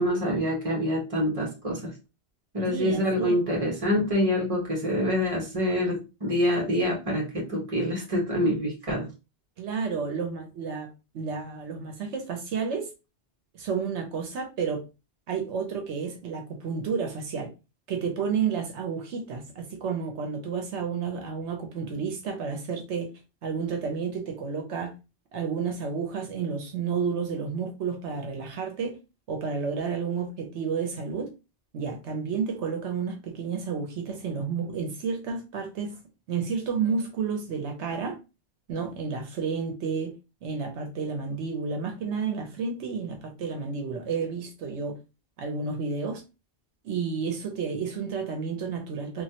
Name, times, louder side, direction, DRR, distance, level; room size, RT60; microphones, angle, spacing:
voice 1, 0.0-1.9 2.5-9.1, equal, 30° right, 1.2 m, -26 dB
voice 2, 2.7-3.4 9.6-10.9 11.1-12.9 13.5-14.8 15.3-17.5 17.9-23.1 23.4-24.9 25.3-29.0 29.3-31.3 31.7-36.0 36.3-38.2 38.7-40.1 40.4-45.0 45.4-46.2 46.8-49.2, right 5 dB, 80° right, 1.0 m, -31 dB
3.1 x 2.5 x 2.8 m
omnidirectional pair, 1.1 m